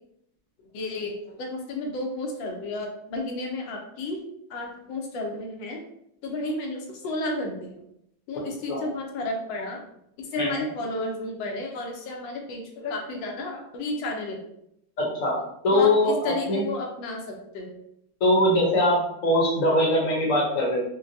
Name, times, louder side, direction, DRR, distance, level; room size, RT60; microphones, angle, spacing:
voice 1, 0.6-4.2 4.5-5.8 6.2-7.8 8.3-9.9 10.2-14.4 15.7-17.8, left 2 dB, 75° left, 1 dB, 1.4 m, -32 dB
voice 2, 15.0-15.3 15.6-16.6 18.2-20.8, left 1 dB, 55° left, -3 dB, 1.1 m, -22 dB
4.5 x 2.2 x 2.6 m, 0.76 s
omnidirectional pair, 2.2 m